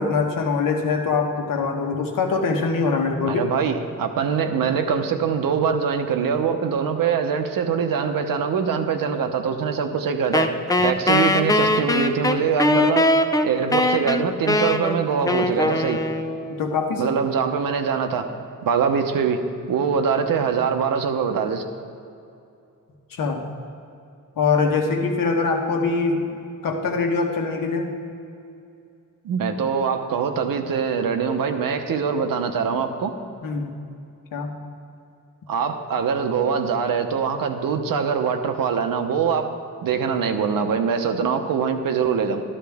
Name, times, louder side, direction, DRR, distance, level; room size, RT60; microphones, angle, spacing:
voice 1, 0.0-3.4 16.6-17.0 23.1-23.4 24.4-26.3 26.6-27.9 33.4-33.7 34.3-34.5, left 4 dB, 75° left, 2 dB, 1.3 m, -23 dB
voice 2, 3.3-10.5 10.8-13.1 13.4-16.0 17.0-18.3 18.6-19.4 19.7-21.6 29.2-33.1 35.5-39.5 39.8-42.4, right 6 dB, 85° right, 6 dB, 0.9 m, -23 dB
Wind instrument woodwind instrument, 10.3-16.6, left 2 dB, 10° left, 0.3 m, -21 dB
12.5 x 12.5 x 3.5 m, 2.6 s
wide cardioid pair, 165°, 33 cm